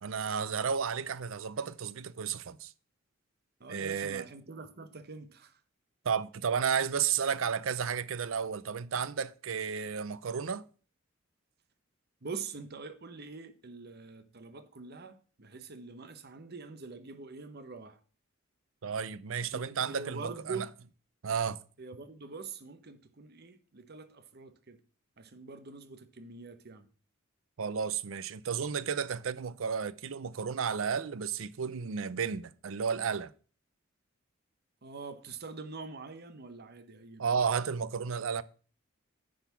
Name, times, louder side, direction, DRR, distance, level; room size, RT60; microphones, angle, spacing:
voice 1, 0.0-2.7 3.7-4.2 6.0-10.6 18.8-20.7 21.2-21.6 27.6-33.3 37.2-38.4, right 6 dB, 80° right, 0.5 m, -32 dB
voice 2, 3.6-5.6 12.2-18.0 19.5-20.6 21.8-24.8 25.2-26.9 34.8-37.3, right 4 dB, 50° right, 1.0 m, -44 dB
10.0 x 4.1 x 6.9 m
head